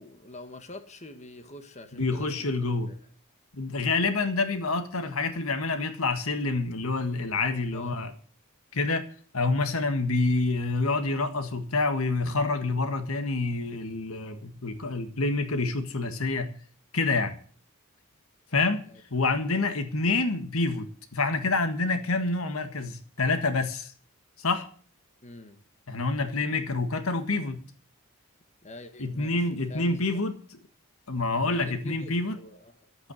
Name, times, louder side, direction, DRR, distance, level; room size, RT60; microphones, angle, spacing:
voice 1, 0.0-2.5 2.9-3.0 7.7-8.0 18.9-19.0 25.2-25.6 28.6-30.2 31.4-32.9, left 1 dB, 35° left, 7 dB, 1.7 m, -45 dB
voice 2, 1.9-2.9 3.5-8.1 8.7-9.1 9.3-16.5 16.9-17.4 18.5-18.8 19.1-23.9 24.4-24.7 25.9-27.6 29.0-30.6 31.1-32.4, left 3 dB, 80° left, 9 dB, 1.7 m, -27 dB
12.0 x 8.5 x 9.3 m, 0.44 s
head